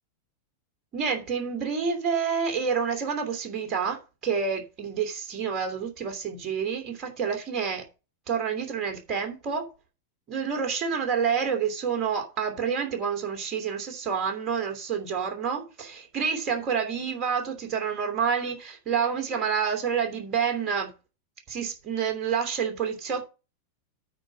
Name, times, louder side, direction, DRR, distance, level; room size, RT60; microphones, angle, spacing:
voice 1, 0.9-7.8 8.3-9.7 10.3-20.9 21.5-23.2, right 6 dB, 30° right, 2.8 m, -28 dB
9.0 x 4.8 x 6.5 m
figure-of-eight pair, 90°, 0 cm